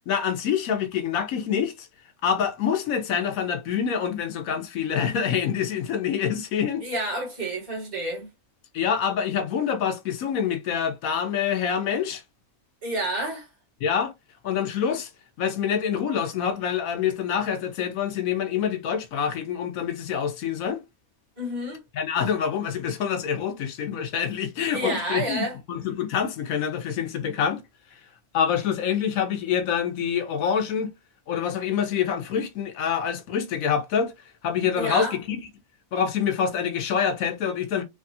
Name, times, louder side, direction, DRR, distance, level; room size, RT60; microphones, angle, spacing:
voice 1, 0.1-1.9 2.2-6.8 8.7-12.2 13.8-14.1 14.4-15.1 15.4-20.8 21.9-27.6 28.3-30.9 31.3-34.1 34.4-35.5 35.9-37.8, left 7 dB, 75° left, 1.1 m, -26 dB
voice 2, 6.8-8.3 12.8-13.5 21.4-21.8 24.7-25.6 34.7-35.2, right 1 dB, 15° right, 1.5 m, -29 dB
3.3 x 2.4 x 2.6 m
omnidirectional pair, 1.5 m